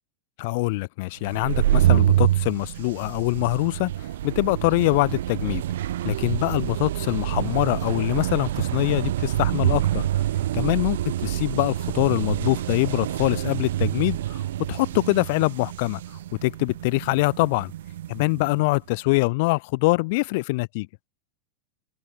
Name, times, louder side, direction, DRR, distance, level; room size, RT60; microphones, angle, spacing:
voice 1, 0.4-3.9 4.2-5.6 6.0-10.1 10.5-16.0 16.4-17.7 18.1-20.9, left 25 dB, 50° left, 0.4 m, -24 dB
sound 1, 1.2-18.6, right 13 dB, 60° right, 1.1 m, -26 dB
figure-of-eight pair, 90°, 0 cm